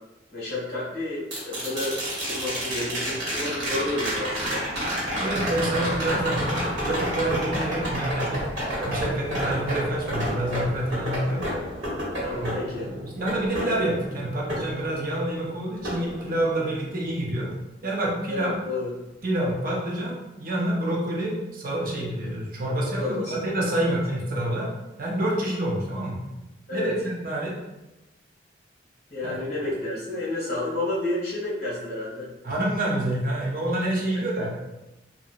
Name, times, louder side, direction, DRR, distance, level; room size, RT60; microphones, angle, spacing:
voice 1, 0.3-4.7 12.2-12.9 18.3-18.9 22.9-23.3 23.8-24.0 26.7-26.9 29.1-32.3, left 2 dB, 55° left, -7 dB, 1.5 m, -30 dB
sound 1, 1.3-15.4 15.8-16.9 19.1-19.2, equal, 75° right, 1.1 m, -30 dB
voice 2, 5.2-8.4 8.8-11.5 12.4-17.5 17.8-18.5 19.2-24.7 25.0-26.2 26.7-27.6 29.2-29.4 32.4-34.5, right 1 dB, 50° right, -2 dB, 0.6 m, -27 dB
2.8 x 2.6 x 2.5 m, 1.0 s
head